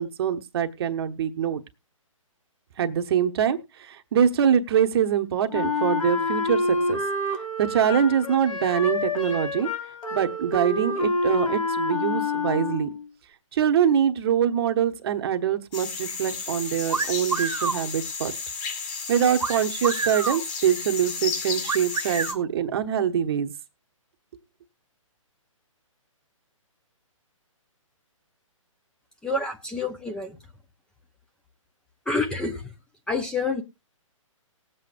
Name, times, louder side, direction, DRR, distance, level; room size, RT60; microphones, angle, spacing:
voice 1, 0.0-1.6 2.8-7.0 7.6-9.7 10.1-12.9 13.5-18.3 19.1-23.5, right 8 dB, 45° right, 6 dB, 1.1 m, -24 dB
Wind instrument woodwind instrument, 5.5-13.1, left 2 dB, 85° left, 2.4 m, -27 dB
sound 1, 15.7-22.3, left 5 dB, 30° left, 2.3 m, -33 dB
sound 2, 16.9-17.8 19.4-20.4 21.7-22.4, right 5 dB, 75° right, 1.4 m, -28 dB
voice 2, 29.2-30.4 32.1-32.7 33.1-33.6, left 3 dB, 5° left, 4 dB, 0.7 m, -28 dB
19.5 x 7.8 x 2.5 m, 0.25 s
hypercardioid pair, 140°, 17 cm